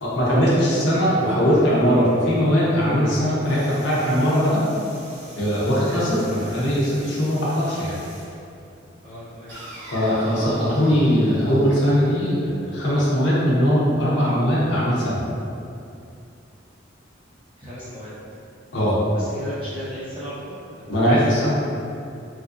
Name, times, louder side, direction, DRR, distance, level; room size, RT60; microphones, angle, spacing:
voice 1, 0.0-4.6 5.4-8.0 9.9-15.2 18.7-19.0 20.9-21.5, equal, 70° left, -8 dB, 0.7 m, -20 dB
sound 1, 3.4-8.4 9.5-12.4, equal, 80° right, 1.4 m, -42 dB
voice 2, 9.0-9.5 17.6-18.1 19.1-20.9 21.4-21.5, equal, 25° right, -14 dB, 0.8 m, -36 dB
3.1 x 2.4 x 2.5 m, 2.6 s
head